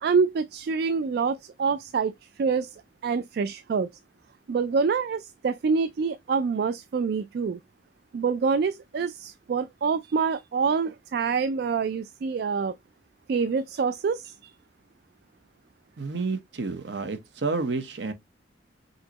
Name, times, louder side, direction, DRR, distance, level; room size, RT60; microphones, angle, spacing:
voice 1, 0.0-3.9 4.5-7.6 8.1-12.8 13.3-14.5, right 5 dB, 60° right, 0.3 m, -26 dB
voice 2, 16.0-18.1, right 3 dB, 75° right, 0.9 m, -30 dB
5.5 x 2.9 x 2.8 m
head